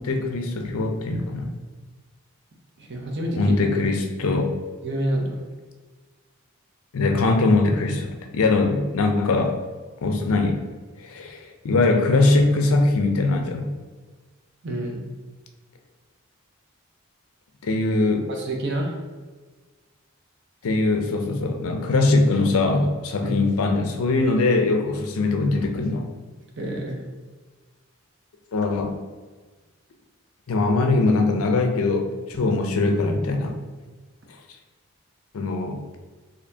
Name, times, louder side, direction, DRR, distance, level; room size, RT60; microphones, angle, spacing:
voice 1, 0.0-1.5 3.4-4.5 6.9-9.6 10.0-10.6 11.0-13.7 17.6-18.3 20.6-26.1 28.5-29.0 30.5-33.6 35.3-35.8, left 3 dB, 80° left, 4 dB, 0.5 m, -21 dB
voice 2, 2.8-3.8 4.8-5.4 14.6-15.0 18.3-19.0 23.2-23.3 26.6-27.0, right 1 dB, 50° right, 1 dB, 0.6 m, -28 dB
4.2 x 2.8 x 2.7 m, 1.4 s
head